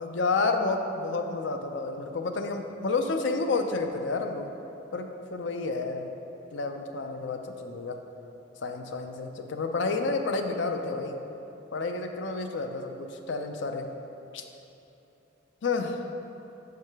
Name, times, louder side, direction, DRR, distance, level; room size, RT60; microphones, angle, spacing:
voice 1, 0.0-4.5 4.9-6.1 6.5-8.0 8.6-11.2 11.7-13.9 14.3-14.4 15.6-16.1, left 3 dB, 75° left, 5 dB, 0.5 m, -30 dB
6.5 x 4.7 x 4.7 m, 2.9 s
head